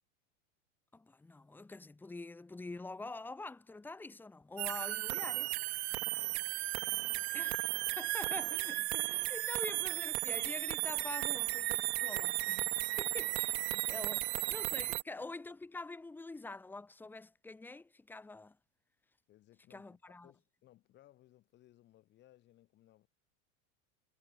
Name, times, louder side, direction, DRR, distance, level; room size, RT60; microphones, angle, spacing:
voice 1, 0.9-5.5 7.3-7.6 8.0-18.6 19.7-20.3, left 3 dB, 5° left, 1.9 m, -46 dB
sound 1, 4.6-15.0, right 20 dB, 60° right, 0.8 m, -35 dB
voice 2, 5.9-8.1 13.9-14.2 14.8-15.0 19.3-23.1, left 14 dB, 30° left, 3.4 m, -64 dB
supercardioid pair, 160°, 37 cm